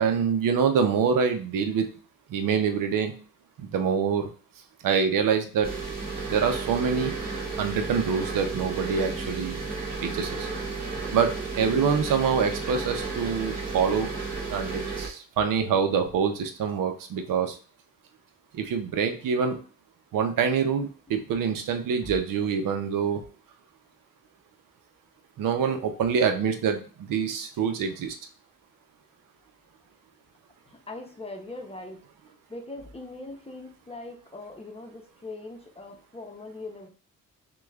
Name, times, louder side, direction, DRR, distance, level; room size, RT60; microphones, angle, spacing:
voice 1, 0.0-1.9 2.3-3.1 3.6-4.3 4.8-5.7 6.3-7.1 7.6-9.6 10.0-10.5 11.1-14.1 14.5-17.6 18.5-19.6 20.1-23.2 25.4-28.1, right 6 dB, 80° right, 6 dB, 0.6 m, -25 dB
sound 1, 5.6-15.1, right 4 dB, 25° right, 2.0 m, -33 dB
voice 2, 30.7-32.0 32.5-36.9, left 2 dB, 20° left, 2 dB, 0.7 m, -41 dB
5.9 x 2.3 x 2.3 m, 0.39 s
cardioid pair, 85°, 32 cm